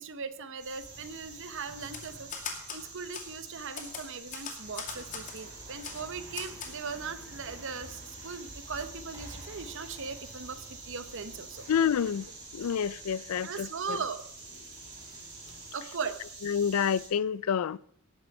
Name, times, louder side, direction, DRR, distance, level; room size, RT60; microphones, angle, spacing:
voice 1, 0.0-2.3 2.7-11.6 13.4-14.2 15.7-16.2, right 5 dB, 60° right, 0.9 m, -39 dB
sound 1, 0.6-17.1, right 3 dB, 80° right, 6.0 m, -48 dB
sound 2, 0.8-15.7, equal, 25° right, 5.0 m, -52 dB
Typewriter, 1.8-2.8 3.1-3.3 3.8-5.4 5.8-6.0 6.3-6.7, left 6 dB, 35° left, 2.3 m, -39 dB
voice 2, 11.7-12.3 12.5-14.0 16.4-17.8, left 7 dB, 75° left, 0.4 m, -28 dB
18.0 x 7.1 x 5.4 m
head